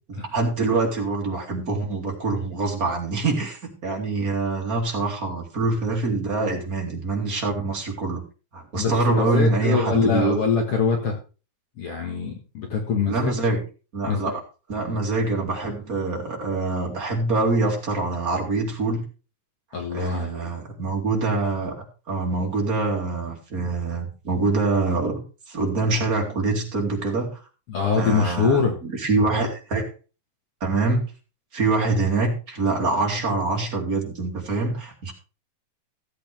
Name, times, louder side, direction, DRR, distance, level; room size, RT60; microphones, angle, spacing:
voice 1, 0.1-8.2 8.5-10.4 13.1-13.6 13.9-14.4 14.7-19.0 19.9-27.4 28.0-29.9 30.6-31.0 31.5-35.1, right 3 dB, 30° right, 0 dB, 2.9 m, -25 dB
voice 2, 8.8-11.2 11.8-13.3 14.0-14.4 19.7-20.5 27.7-28.7, left 5 dB, 55° left, 2 dB, 2.3 m, -24 dB
15.5 x 8.2 x 3.5 m, 0.33 s
omnidirectional pair, 3.5 m